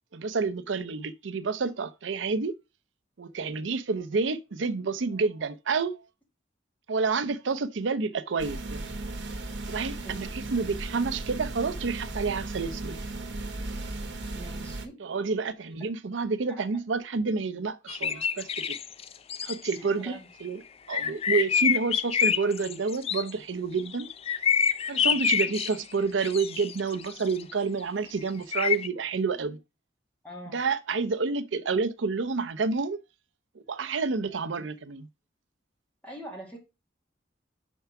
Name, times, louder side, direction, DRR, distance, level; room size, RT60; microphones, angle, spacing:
voice 1, 0.1-2.5 3.2-6.0 6.9-8.8 9.7-13.0 15.0-18.8 19.4-20.6 20.9-24.1 24.9-29.6 30.5-33.0 33.7-35.1, right 4 dB, 85° right, 0.6 m, -29 dB
sound 1, 8.4-14.9, right 2 dB, 70° right, 1.1 m, -36 dB
voice 2, 14.3-15.0 16.5-16.6 19.8-20.3 25.0-25.5 30.2-30.6 36.0-36.6, equal, 10° left, 2.3 m, -44 dB
sound 2, 17.9-19.8 20.9-23.3 23.8-25.7 26.2-27.5 28.5-28.9, left 7 dB, 35° left, 0.4 m, -27 dB
5.8 x 4.6 x 5.7 m
head